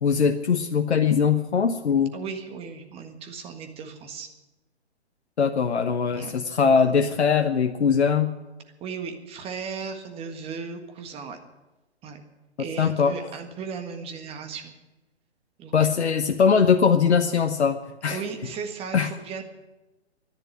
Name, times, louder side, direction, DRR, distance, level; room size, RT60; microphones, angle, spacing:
voice 1, 0.0-2.1 5.4-8.3 12.8-13.1 15.7-18.2 18.9-19.1, left 6 dB, 70° left, 5 dB, 1.1 m, -21 dB
voice 2, 2.1-4.3 6.1-6.3 8.8-11.4 12.0-12.2 12.6-14.7 15.6-15.7 18.1-19.4, right 5 dB, 15° right, 6 dB, 1.6 m, -36 dB
13.5 x 10.5 x 9.7 m, 1.1 s
figure-of-eight pair, 130°, 34 cm